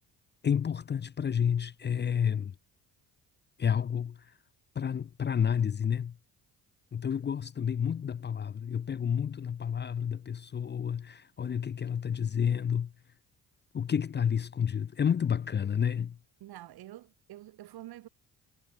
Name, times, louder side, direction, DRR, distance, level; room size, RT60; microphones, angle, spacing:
voice 1, 0.4-2.5 3.6-4.2 4.8-6.2 6.9-12.9 13.7-16.2, left 8 dB, 30° left, 0.5 m, -30 dB
voice 2, 16.4-18.1, right 14 dB, 70° right, 1.8 m, -47 dB
supercardioid pair, 60°, 39 cm